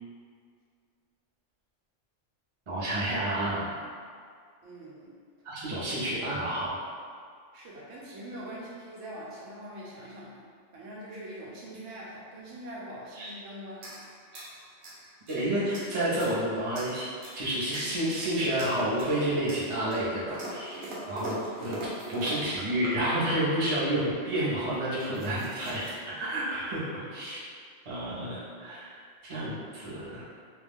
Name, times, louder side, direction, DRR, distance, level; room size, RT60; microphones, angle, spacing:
voice 1, 2.7-3.7 5.4-6.8 13.1-13.3 15.3-17.1 17.3-21.8 22.1-27.5 27.8-30.3, right 1 dB, 30° right, -9 dB, 0.6 m, -30 dB
voice 2, 4.6-5.1 5.7-5.9 7.5-10.3 10.7-13.8, right 1 dB, 85° right, -5 dB, 1.0 m, -43 dB
sound 1, 13.7-15.4 15.7-16.4 16.7-17.4 17.7-18.3 18.6-19.2 19.5-23.0 23.3-23.7 24.4-24.5 24.7-25.9, right 1 dB, 60° right, 0.9 m, -42 dB
2.4 x 2.2 x 3.4 m, 2.1 s
omnidirectional pair, 1.2 m